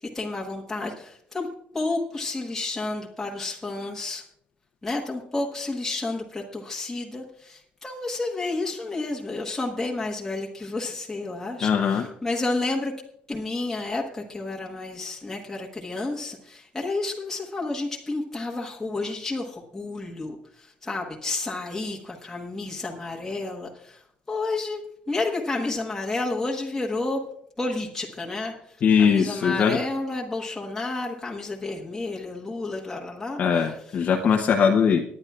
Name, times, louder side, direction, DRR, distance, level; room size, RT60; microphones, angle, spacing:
voice 1, 0.0-1.5 1.7-4.2 4.8-12.9 13.3-24.8 25.1-27.2 27.6-33.8, left 2 dB, 10° left, -2 dB, 1.4 m, -31 dB
voice 2, 11.6-12.1 28.8-29.8 33.4-35.0, left 6 dB, 50° left, 2 dB, 0.8 m, -20 dB
25.0 x 9.8 x 2.4 m, 0.69 s
cardioid pair, 135°, 3 cm